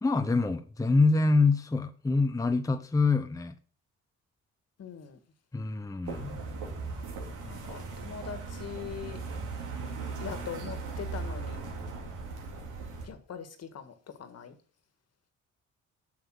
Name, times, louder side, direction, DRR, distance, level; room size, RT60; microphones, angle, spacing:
voice 1, 0.0-3.5 5.5-6.4, left 3 dB, 10° left, 0.8 m, -25 dB
voice 2, 4.8-5.2 7.4-9.2 10.2-11.6 13.0-14.6, left 7 dB, 55° left, 1.8 m, -42 dB
sound 1, 6.0-13.1, right 4 dB, 80° right, 3.2 m, -38 dB
7.7 x 7.4 x 6.4 m
cardioid pair, 90°, 30 cm